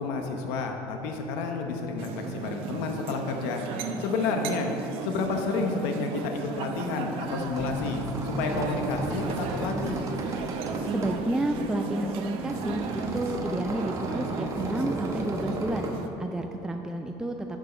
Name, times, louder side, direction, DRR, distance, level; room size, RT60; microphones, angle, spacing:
voice 1, 0.0-3.6 4.0-4.7 5.0-10.0, left 4 dB, 85° left, 3 dB, 0.9 m, -30 dB
sound 1, 2.0-16.1, right 4 dB, 65° right, 0.8 m, -35 dB
sound 2, 7.2-15.9, right 2 dB, 30° right, 1.0 m, -34 dB
voice 2, 10.9-15.9 16.2-17.4, right 1 dB, 5° right, 4 dB, 0.4 m, -30 dB
11.0 x 6.2 x 4.3 m, 3.0 s
cardioid pair, 125°, 10 cm